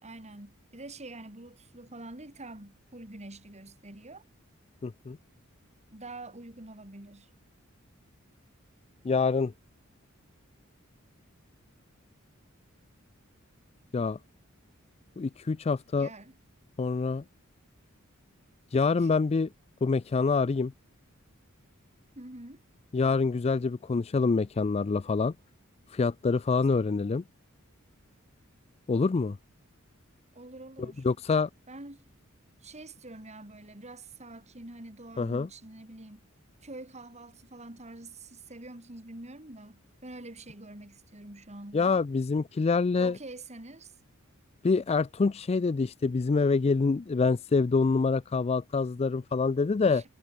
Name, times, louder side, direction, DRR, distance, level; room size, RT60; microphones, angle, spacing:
voice 1, 0.0-4.2 5.9-7.3 16.0-16.3 19.0-19.1 22.2-22.6 30.3-31.1 31.7-32.2 32.6-36.2 36.6-42.0 43.0-44.0 49.9-50.0, right 2 dB, 35° right, 3.9 m, -46 dB
voice 2, 4.8-5.2 9.0-9.5 13.9-14.2 15.2-16.1 16.8-17.2 18.7-19.5 19.8-20.7 22.9-25.3 25.9-27.2 28.9-29.4 31.0-31.5 35.2-35.5 41.7-43.2 44.6-50.0, left 4 dB, 30° left, 0.4 m, -26 dB
head